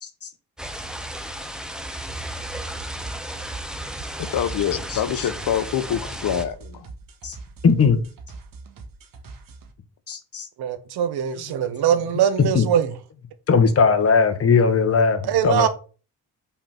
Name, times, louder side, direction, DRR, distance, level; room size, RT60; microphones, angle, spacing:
sound 1, 0.6-6.4, right 1 dB, ahead, 0.9 m, -34 dB
sound 2, 2.0-9.7, right 3 dB, 60° right, 1.6 m, -42 dB
voice 1, 4.3-6.6, left 9 dB, 60° left, 0.9 m, -25 dB
voice 2, 4.9-5.3 7.2-7.4 7.6-8.0 10.1-10.5 11.6-11.7 12.5-12.7 13.5-15.7, left 5 dB, 40° left, 1.4 m, -19 dB
voice 3, 10.6-12.9 15.2-15.7, right 9 dB, 85° right, 1.1 m, -22 dB
5.8 x 4.4 x 5.8 m
cardioid pair, 110°, 38 cm